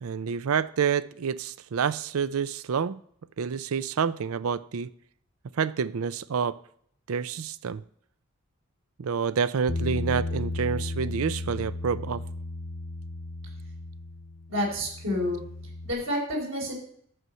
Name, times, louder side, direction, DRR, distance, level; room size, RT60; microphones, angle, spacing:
voice 1, 0.0-3.0 3.4-4.9 5.6-6.6 7.1-7.8 9.0-12.2, right 6 dB, 85° right, 17 dB, 0.5 m, -28 dB
Bass guitar, 9.7-15.9, left 2 dB, 75° left, 0.9 m, -34 dB
voice 2, 14.5-15.4 15.8-16.7, left 1 dB, 70° right, -1 dB, 4.9 m, -29 dB
11.0 x 7.8 x 5.5 m, 0.64 s
head